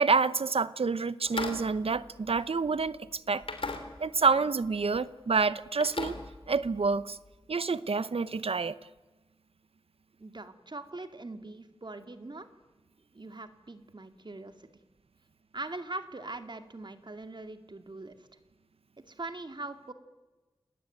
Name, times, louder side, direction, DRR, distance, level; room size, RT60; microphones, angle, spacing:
voice 1, 0.0-3.4 4.0-6.2 6.5-7.2 7.5-8.8, right 4 dB, 85° right, 16 dB, 0.9 m, -28 dB
sound 1, 1.2-2.9 3.4-4.3 4.6-5.0 5.4-7.0, left 3 dB, 70° left, 3.4 m, -39 dB
voice 2, 10.2-12.5 13.1-14.7 15.5-18.3 19.1-19.9, right 2 dB, 50° right, 8 dB, 2.3 m, -42 dB
29.0 x 19.5 x 9.2 m, 1.2 s
wide cardioid pair, 50°, 10 cm